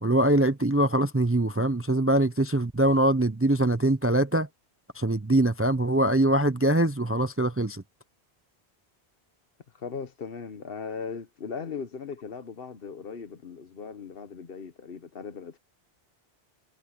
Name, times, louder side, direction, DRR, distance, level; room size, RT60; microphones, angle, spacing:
voice 1, 0.0-4.5 4.9-7.8, right 1 dB, 15° right, 0.5 m, -23 dB
voice 2, 9.7-15.6, left 5 dB, 60° left, 1.2 m, -38 dB
omnidirectional pair, 1.1 m